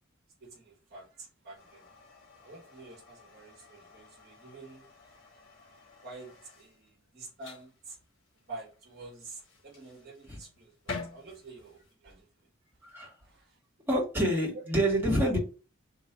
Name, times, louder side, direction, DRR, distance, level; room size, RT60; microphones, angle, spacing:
voice 1, 0.4-1.9 2.4-5.2 6.0-8.0 8.5-12.5 12.8-13.6, right 3 dB, 50° right, 1.7 m, -49 dB
sound 1, 1.5-11.9, left 3 dB, 65° left, 1.6 m, -49 dB
voice 2, 12.8-13.1 13.9-15.4, right 1 dB, 10° right, 1.8 m, -27 dB
3.8 x 3.0 x 4.6 m
head